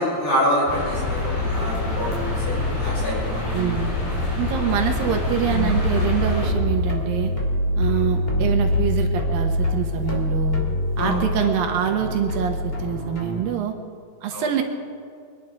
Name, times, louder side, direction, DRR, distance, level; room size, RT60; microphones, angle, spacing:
voice 1, 0.0-3.4 4.6-4.7 7.9-8.0 11.0-11.2 14.3-14.5, equal, 90° left, -6 dB, 7.4 m, -26 dB
sound 1, 0.7-6.5, left 2 dB, 50° left, 5.3 m, -26 dB
sound 2, 1.5-13.4, left 1 dB, 20° left, 1.7 m, -26 dB
voice 2, 3.5-4.0 4.4-7.3 7.8-10.6 11.0-13.8 14.2-14.6, right 9 dB, 70° right, 4 dB, 2.6 m, -25 dB
24.5 x 10.5 x 4.8 m, 2.3 s
omnidirectional pair, 4.5 m